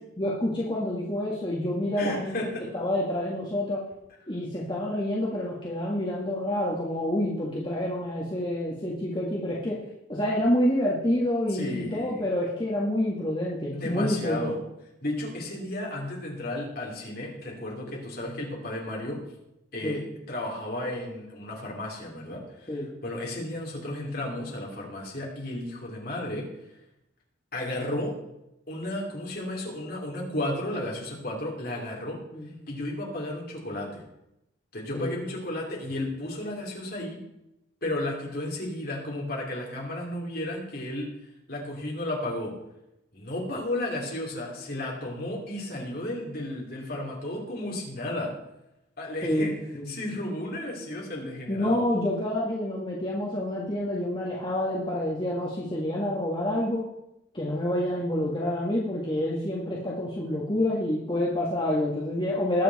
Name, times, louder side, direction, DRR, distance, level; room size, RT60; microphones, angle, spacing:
voice 1, 0.2-2.4 2.7-3.8 4.3-9.8 10.1-14.5 19.8-20.0 22.7-22.9 32.3-32.5 34.9-35.1 49.2-50.0 51.5-56.8 57.3-62.6, left 1 dB, 25° left, -4 dB, 1.7 m, -28 dB
voice 2, 2.0-2.6 11.5-12.2 13.7-14.6 15.0-19.2 19.7-26.5 27.5-28.2 28.7-32.2 32.7-34.0 34.7-37.2 37.8-41.1 41.5-42.5 43.1-48.3 49.0-49.5 49.9-51.9, left 1 dB, 50° left, -1 dB, 3.4 m, -33 dB
20.0 x 7.5 x 4.2 m, 0.87 s
head